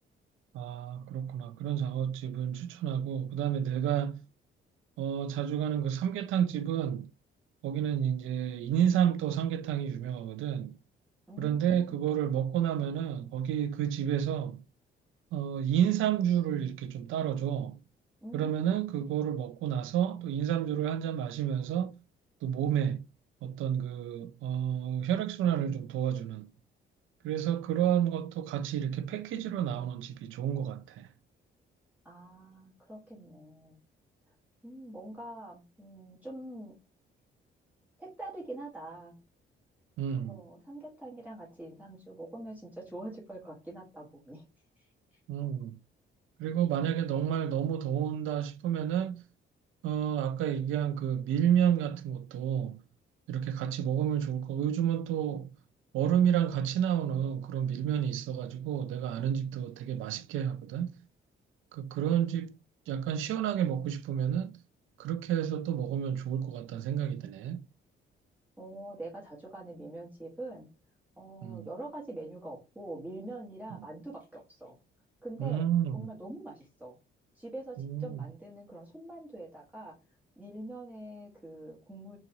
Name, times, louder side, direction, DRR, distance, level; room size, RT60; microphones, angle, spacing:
voice 1, 0.5-4.2 5.0-7.1 7.6-10.8 11.4-14.6 15.3-17.8 18.3-22.0 22.4-23.0 23.4-26.5 27.2-31.1 40.0-40.4 45.3-45.8 46.4-49.2 49.8-52.8 53.3-55.5 55.9-60.9 61.7-62.5 62.9-64.6 65.0-67.6 71.4-71.7 75.4-76.1 77.8-78.2, right 9 dB, 80° right, 0.5 m, -30 dB
voice 2, 11.3-12.0 18.2-18.7 32.0-33.8 34.6-36.8 38.0-39.2 40.3-44.4 44.8-44.9 68.6-70.7 71.2-74.8 75.2-75.6 75.9-77.0 77.3-80.0 80.4-82.2, right 1 dB, 10° right, 1.5 m, -44 dB
3.9 x 2.5 x 2.9 m
cardioid pair, 90°, 20 cm